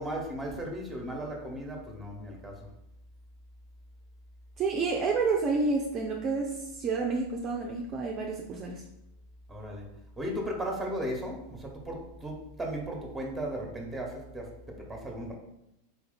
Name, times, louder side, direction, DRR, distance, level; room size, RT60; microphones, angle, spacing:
voice 1, 0.0-2.7 9.5-15.4, equal, 5° right, 0 dB, 1.1 m, -36 dB
voice 2, 4.6-8.8, right 4 dB, 30° right, 0 dB, 0.5 m, -29 dB
4.3 x 2.6 x 4.1 m, 0.84 s
figure-of-eight pair, 90°, 0 cm